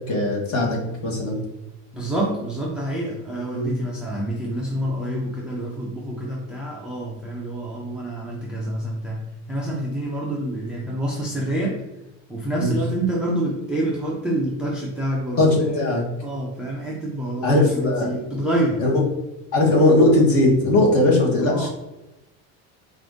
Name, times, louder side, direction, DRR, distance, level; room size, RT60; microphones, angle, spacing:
voice 1, 0.1-1.4 3.5-3.7 12.6-12.7 15.4-15.5 15.7-16.0 17.4-18.1 18.8-18.9 19.5-21.7, left 2 dB, 35° left, -1 dB, 1.3 m, -19 dB
voice 2, 1.9-11.8 12.3-18.9 21.4-21.7, right 1 dB, ahead, -3 dB, 0.5 m, -27 dB
4.8 x 2.6 x 3.6 m, 0.99 s
cardioid pair, 150°, 39 cm